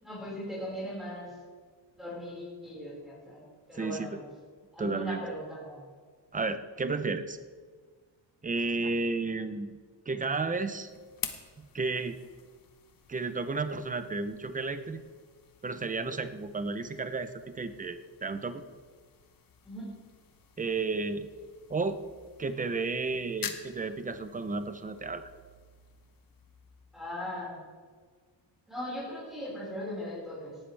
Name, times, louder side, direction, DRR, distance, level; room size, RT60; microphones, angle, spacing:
voice 1, 0.0-1.4 1.9-3.4 3.7-4.3 4.7-5.8 19.6-19.9 26.9-27.6 28.7-30.6, left 1 dB, ahead, -8 dB, 5.1 m, -39 dB
voice 2, 3.7-4.2 4.8-5.2 6.3-7.4 8.4-9.7 10.1-10.9 11.6-12.2 13.1-15.0 15.6-17.3 17.5-18.6 20.6-21.3 21.7-22.0 22.4-25.2, right 3 dB, 20° right, 10 dB, 0.7 m, -32 dB
sound 1, 10.4-27.3, left 7 dB, 50° left, 1.2 m, -48 dB
18.0 x 13.0 x 3.4 m, 1.6 s
wide cardioid pair, 150°, 44 cm